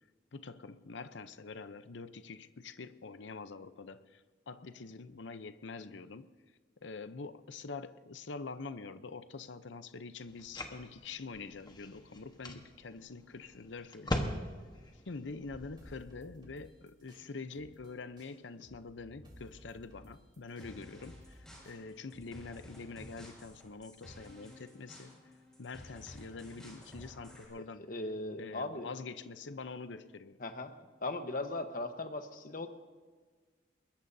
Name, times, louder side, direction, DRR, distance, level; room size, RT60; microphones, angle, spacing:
voice 1, 0.3-6.3 6.8-14.4 15.1-21.4 21.7-25.1 25.6-27.8 28.4-30.4, left 4 dB, 80° left, 0.7 m, -45 dB
sound 1, 10.3-16.0, left 1 dB, 25° left, 1.2 m, -41 dB
sound 2, 15.8-17.9 18.2-22.7, equal, 25° right, 3.2 m, -57 dB
sound 3, 20.6-27.5, equal, 5° left, 5.8 m, -54 dB
voice 2, 27.6-28.9 30.4-30.7 31.0-32.7, left 2 dB, 50° left, 1.2 m, -38 dB
23.0 x 20.5 x 2.7 m
head